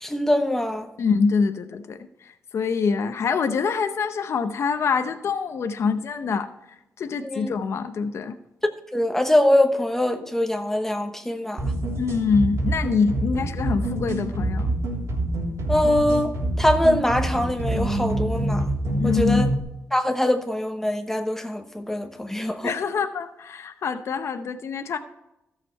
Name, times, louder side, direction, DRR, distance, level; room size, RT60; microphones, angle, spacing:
voice 1, 0.0-0.9 7.2-7.5 8.9-11.6 15.7-18.6 19.0-19.5 19.9-22.7, left 1 dB, 5° left, 1.0 m, -23 dB
voice 2, 1.0-6.5 7.0-8.4 12.0-14.7 19.0-19.5 22.6-25.0, left 5 dB, 65° left, 0.7 m, -25 dB
sound 1, 11.6-19.6, right 1 dB, 75° right, 3.4 m, -26 dB
13.5 x 6.7 x 4.5 m
cardioid pair, 80°, 5 cm